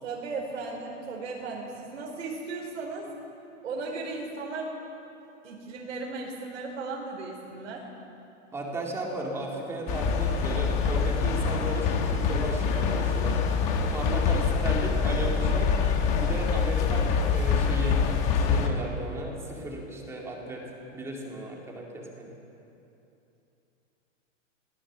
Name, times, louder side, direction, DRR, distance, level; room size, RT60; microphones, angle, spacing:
voice 1, 0.0-3.1 3.6-4.7 5.4-7.9, right 3 dB, 85° right, -2 dB, 4.7 m, -36 dB
voice 2, 8.5-13.4 13.9-15.7 16.2-18.0 18.5-20.6 20.9-22.3, right 1 dB, 5° right, -1 dB, 2.2 m, -35 dB
sound 1, 9.9-18.7, left 5 dB, 20° left, 1.1 m, -25 dB
23.0 x 17.0 x 7.4 m, 2.9 s
supercardioid pair, 175°, 38 cm